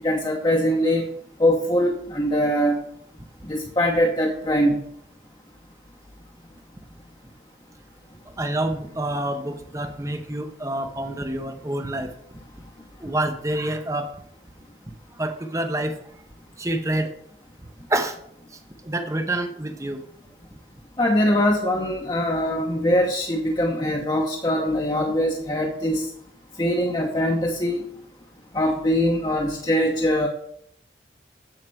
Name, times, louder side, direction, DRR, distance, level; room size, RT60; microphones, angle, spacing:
voice 1, 0.0-1.0 1.4-2.8 3.5-4.8 21.0-26.0 26.6-27.8 28.5-30.3, equal, 25° left, 0 dB, 0.9 m, -22 dB
voice 2, 8.4-12.1 13.0-14.1 15.2-15.9 16.6-17.1 17.9-18.2 18.8-20.0, right 1 dB, 15° right, 7 dB, 0.7 m, -27 dB
7.7 x 6.5 x 7.6 m, 0.71 s
head